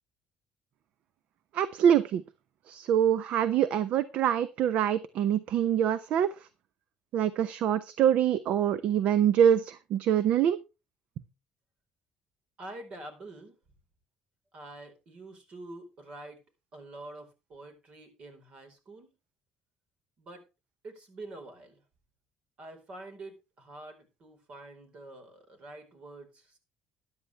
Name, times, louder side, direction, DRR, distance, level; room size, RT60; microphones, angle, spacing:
voice 1, 1.5-2.2 2.7-6.3 7.1-10.6, right 9 dB, 70° right, 14 dB, 0.8 m, -25 dB
voice 2, 12.6-13.6 14.5-16.4 16.7-19.1 20.2-20.4 20.8-21.8 22.6-26.6, right 2 dB, 50° right, 7 dB, 4.5 m, -46 dB
13.5 x 11.0 x 3.4 m, 0.28 s
cardioid pair, 100°, 2 cm